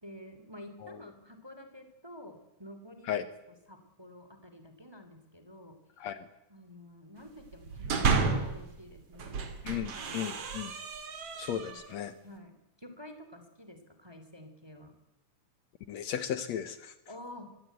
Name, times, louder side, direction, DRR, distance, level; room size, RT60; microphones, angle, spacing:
voice 1, 0.0-3.3 3.7-5.8 6.5-9.4 9.7-10.5 11.5-11.8 12.2-14.9 17.1-17.5, left 1 dB, 10° right, 7 dB, 2.4 m, -49 dB
sound 1, 7.5-8.6 9.1-12.0, right 4 dB, 55° right, 3.1 m, -32 dB
voice 2, 9.6-10.7 11.4-12.1 15.9-16.9, left 9 dB, 70° left, 13 dB, 2.2 m, -35 dB
24.5 x 16.5 x 9.2 m, 0.91 s
omnidirectional pair, 3.4 m